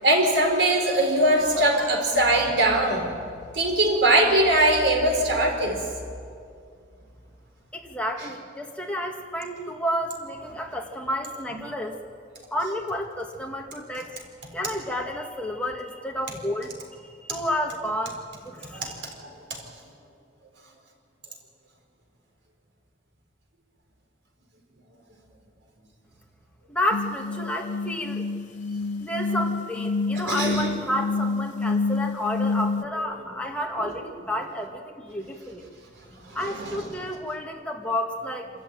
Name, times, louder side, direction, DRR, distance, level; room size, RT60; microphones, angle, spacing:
voice 1, 0.0-3.1 3.5-5.8 11.5-11.7 18.7-18.9 19.2-19.6 30.1-30.7 36.2-36.8, right 1 dB, 85° right, 2 dB, 4.4 m, -22 dB
voice 2, 7.7-12.0 12.5-14.1 14.5-16.7 17.0-18.2 18.4-19.0 26.7-28.3 29.0-35.6 36.3-38.5, equal, 5° left, 0 dB, 1.9 m, -30 dB
sound 1, 26.9-32.8, left 3 dB, 80° left, 0.5 m, -28 dB
26.0 x 14.0 x 9.1 m, 2.3 s
head